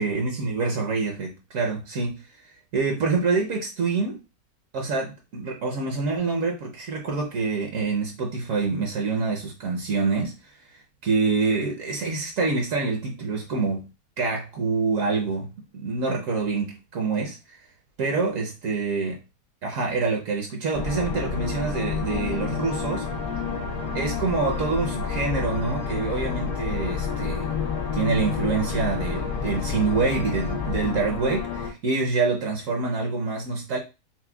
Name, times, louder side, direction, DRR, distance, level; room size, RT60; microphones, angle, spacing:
voice 1, 0.0-2.2 2.7-4.2 4.7-10.3 11.0-13.8 14.2-15.5 15.7-17.6 18.0-19.2 19.6-23.1 23.9-27.5 27.9-33.8, right 4 dB, 65° right, 1.0 m, -26 dB
sound 1, 20.7-31.7, left 6 dB, 85° left, 1.2 m, -29 dB
5.9 x 2.1 x 2.2 m
omnidirectional pair, 1.6 m